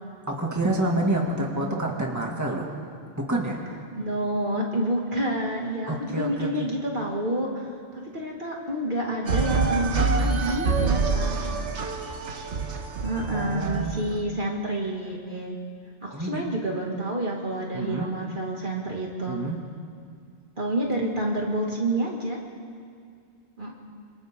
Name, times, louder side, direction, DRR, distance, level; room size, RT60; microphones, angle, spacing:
voice 1, 0.3-2.7 3.3-3.6 5.9-6.7 13.3-14.0 16.1-16.4 17.7-18.2 19.3-19.6, right 1 dB, 15° right, -1 dB, 2.3 m, -28 dB
voice 2, 4.0-7.7 8.1-11.4 13.0-15.6 16.0-19.4 20.6-22.4 23.6-23.7, right 1 dB, 45° right, -2 dB, 2.5 m, -28 dB
sound 1, 9.3-14.1, right 4 dB, 80° right, 1.5 m, -26 dB
28.0 x 26.5 x 3.8 m, 2.2 s
omnidirectional pair, 1.2 m